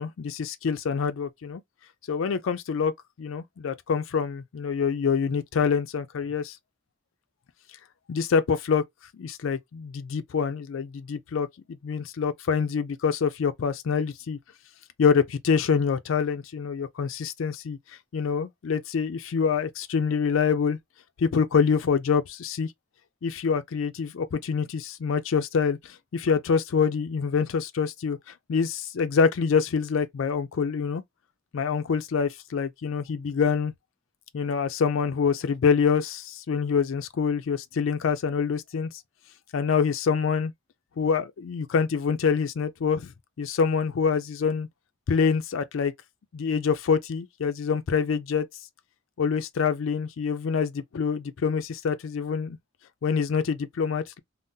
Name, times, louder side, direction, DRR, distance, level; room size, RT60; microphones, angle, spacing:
voice 1, 0.0-1.6 2.1-2.9 3.2-6.6 8.1-8.8 9.1-11.5 11.8-14.4 15.0-17.8 18.1-20.8 21.2-22.7 23.2-28.2 28.5-31.0 31.5-33.7 34.3-38.9 39.5-40.5 41.0-43.1 43.4-44.7 45.1-45.9 46.3-48.5 49.2-52.6 53.0-54.2, left 6 dB, 80° left, 0.4 m, -26 dB
2.6 x 2.0 x 3.6 m
head